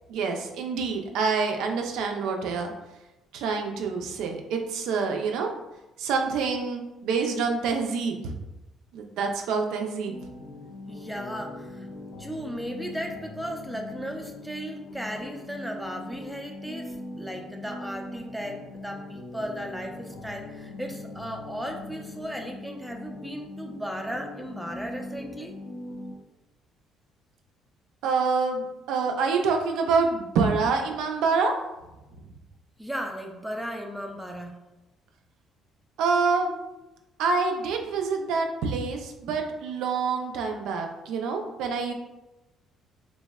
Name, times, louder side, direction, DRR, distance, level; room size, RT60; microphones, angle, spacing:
voice 1, 0.1-2.7 3.3-5.5 6.0-8.3 8.9-10.1 28.0-31.5 36.0-36.6 37.2-41.9, right 4 dB, 80° right, 3 dB, 0.3 m, -26 dB
sound 1, 10.0-26.1, left 2 dB, 85° left, 0.8 m, -41 dB
voice 2, 10.9-11.9 12.2-25.5 32.8-34.5, equal, 5° right, 2 dB, 0.4 m, -36 dB
3.3 x 2.0 x 2.2 m, 0.99 s
cardioid pair, 105°, 0 cm